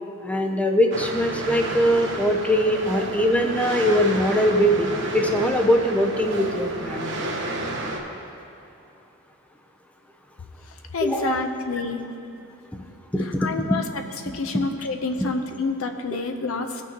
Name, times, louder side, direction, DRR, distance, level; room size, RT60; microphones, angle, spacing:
voice 1, 0.2-7.1 11.0-11.3 13.1-13.7, equal, 5° left, 3 dB, 0.5 m, -22 dB
sound 1, 0.9-8.0, right 2 dB, 60° right, 1.1 m, -31 dB
voice 2, 10.9-12.0 12.3-12.4 13.2-16.8, left 3 dB, 70° left, 6 dB, 0.6 m, -28 dB
17.0 x 6.1 x 2.9 m, 2.8 s
head